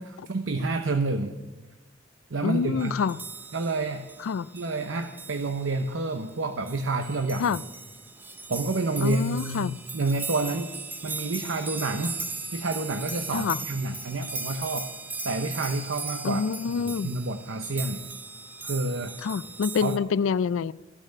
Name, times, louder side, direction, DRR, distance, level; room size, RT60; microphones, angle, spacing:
voice 1, 0.0-1.4 2.3-2.9 3.5-4.1 4.5-7.6 8.5-10.7 11.0-12.2 12.5-14.9 15.2-16.4 16.7-18.0 18.6-19.1 19.8-19.9, right 3 dB, 75° right, 0.8 m, -29 dB
voice 2, 2.4-3.2 4.2-4.5 7.4-7.6 9.0-9.8 13.3-13.6 16.2-17.1 19.2-20.7, left 6 dB, 85° left, 0.4 m, -26 dB
sound 1, 2.8-20.0, right 3 dB, 10° right, 0.6 m, -38 dB
15.0 x 6.5 x 9.8 m
head